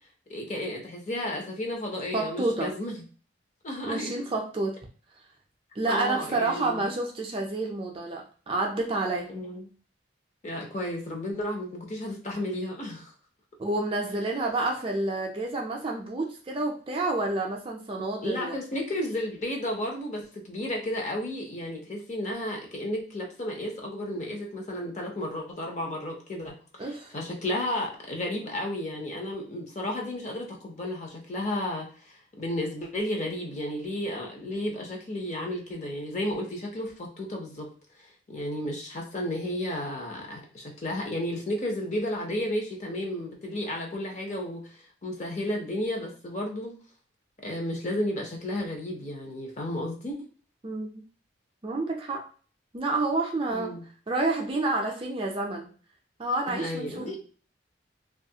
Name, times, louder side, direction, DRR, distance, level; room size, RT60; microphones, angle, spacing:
voice 1, 0.3-3.0 3.6-4.1 5.9-6.8 9.3-9.7 10.4-13.1 18.2-37.7 38.0-46.7 47.4-50.2 53.5-53.8 56.5-57.2, left 1 dB, 35° left, 0 dB, 0.6 m, -33 dB
voice 2, 2.1-2.7 3.8-4.8 5.8-9.3 13.6-18.6 26.8-27.1 50.6-50.9 51.6-52.3 52.7-53.8 54.1-55.7 56.2-57.2, right 2 dB, 25° right, 0 dB, 0.4 m, -29 dB
2.6 x 2.4 x 2.7 m, 0.41 s
head